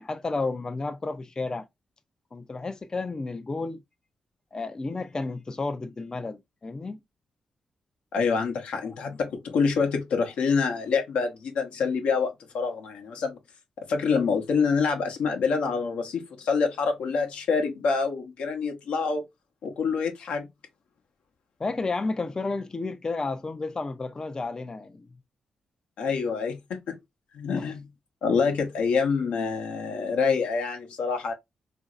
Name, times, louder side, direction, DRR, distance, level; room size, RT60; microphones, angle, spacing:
voice 1, 0.0-1.7 2.3-3.8 4.5-7.0 8.8-9.0 21.6-25.1 27.5-27.7, left 3 dB, 35° left, 0.4 m, -32 dB
voice 2, 8.1-13.4 13.8-19.2 19.6-20.5 26.0-27.0 27.3-27.9 28.2-31.3, left 5 dB, 85° left, 0.7 m, -26 dB
2.9 x 2.5 x 2.4 m
cardioid pair, 55°, 2 cm